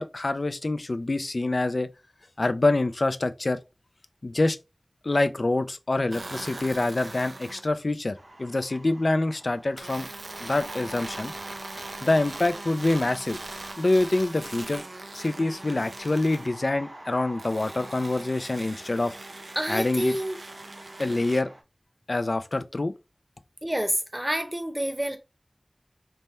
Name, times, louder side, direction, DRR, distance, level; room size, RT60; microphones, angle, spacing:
voice 1, 0.0-1.9 2.4-3.6 4.2-4.6 5.0-10.1 10.4-11.3 12.0-13.4 13.8-14.8 15.1-19.2 19.7-20.1 21.0-21.5 22.1-22.9, left 2 dB, 70° left, 0.3 m, -26 dB
sound 1, 6.1-7.7 9.8-16.5 17.4-21.4, right 2 dB, 85° right, 0.4 m, -41 dB
sound 2, 8.1-21.6, right 1 dB, 65° right, 0.9 m, -47 dB
voice 2, 19.6-20.4 23.6-25.2, right 1 dB, 15° right, 0.7 m, -28 dB
3.3 x 2.2 x 4.1 m
wide cardioid pair, 45°, 0 cm